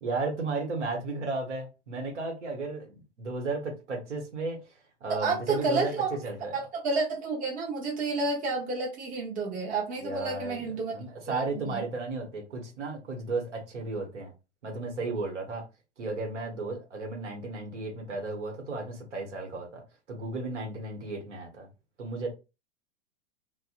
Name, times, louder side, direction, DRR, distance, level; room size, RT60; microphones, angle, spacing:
voice 1, 0.0-4.7 5.0-6.6 10.0-14.3 14.6-15.6 16.0-19.8 20.1-21.7 22.0-22.3, right 3 dB, 75° right, 1.0 m, -34 dB
voice 2, 5.1-6.1 6.5-10.9 11.3-11.8, right 3 dB, 20° right, 0.8 m, -30 dB
2.6 x 2.1 x 2.4 m
hypercardioid pair, 100°, 36 cm